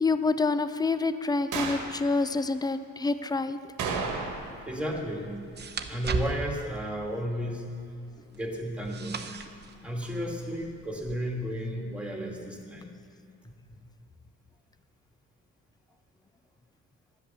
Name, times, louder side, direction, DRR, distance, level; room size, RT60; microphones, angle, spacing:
voice 1, 0.0-3.6, left 3 dB, 15° left, 11 dB, 0.5 m, -27 dB
sound 1, 1.5-2.0 3.8-4.6 4.9-5.0 10.0-10.1, right 4 dB, 85° right, 1.5 m, -32 dB
sound 2, 4.0-11.2, right 4 dB, 35° right, 0.8 m, -39 dB
voice 2, 4.7-5.4 5.9-7.7 8.3-9.2 9.8-12.9 13.4-13.8, equal, 5° right, 0 dB, 2.1 m, -33 dB
11.5 x 8.3 x 6.8 m, 2.5 s
cardioid pair, 90°, 30 cm